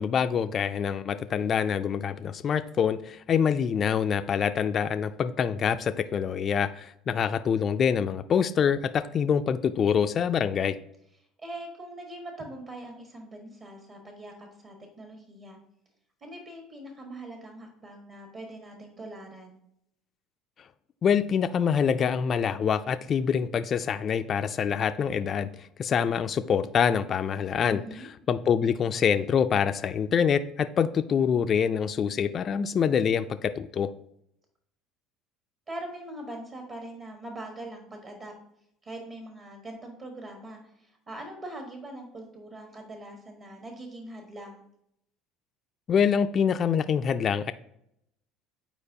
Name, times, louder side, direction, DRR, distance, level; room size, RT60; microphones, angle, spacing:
voice 1, 0.0-10.8 21.0-27.8 28.3-33.9 45.9-47.5, left 7 dB, 40° left, 9 dB, 0.3 m, -25 dB
voice 2, 11.4-15.6 16.2-19.6 27.6-28.1 35.7-38.3 38.8-44.6, right 1 dB, 40° right, 2 dB, 1.4 m, -42 dB
8.8 x 4.5 x 2.8 m, 0.75 s
supercardioid pair, 95°, 0 cm